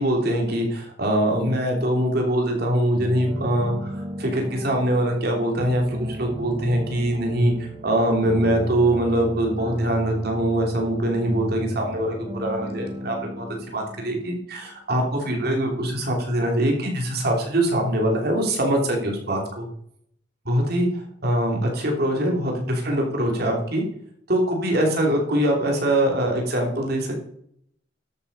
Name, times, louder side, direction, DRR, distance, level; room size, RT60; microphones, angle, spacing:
voice 1, 0.0-19.7 20.4-23.8 24.3-27.1, right 1 dB, 60° right, 1 dB, 3.0 m, -23 dB
sound 1, 2.9-14.6, equal, 25° right, 1.5 m, -36 dB
12.5 x 7.0 x 5.5 m, 0.71 s
head